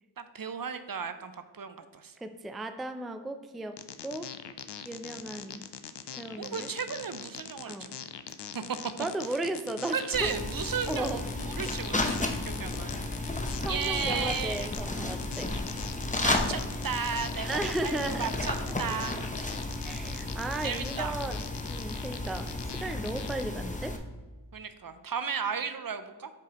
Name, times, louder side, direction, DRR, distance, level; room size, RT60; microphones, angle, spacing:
voice 1, 0.2-2.1 6.4-8.0 8.5-8.8 9.9-13.4 13.7-14.7 16.2-19.2 20.6-21.1 24.5-26.3, right 6 dB, 50° right, 10 dB, 0.5 m, -35 dB
voice 2, 2.2-3.8 4.0-4.3 4.8-5.6 6.1-6.7 7.7-7.9 9.0-10.3 10.9-11.2 11.9-12.0 13.6-15.5 17.4-18.3 18.7-18.8 19.8-21.4 21.7-24.0, right 2 dB, ahead, 9 dB, 0.3 m, -35 dB
sound 1, 3.8-23.4, left 8 dB, 70° left, 0.5 m, -42 dB
sound 2, 10.1-24.0, left 2 dB, 15° left, 0.7 m, -33 dB
7.0 x 4.8 x 2.9 m, 1.3 s
wide cardioid pair, 40°, 43 cm